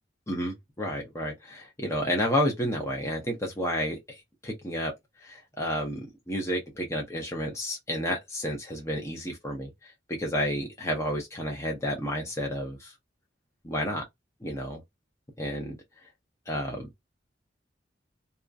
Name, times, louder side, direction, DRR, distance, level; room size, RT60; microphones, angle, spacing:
voice 1, 0.3-4.9 5.2-9.7 10.1-12.9 13.6-14.0 14.4-14.8 15.4-15.8 16.5-16.9, equal, 15° left, 0.8 m, -31 dB
2.9 x 2.3 x 2.4 m
head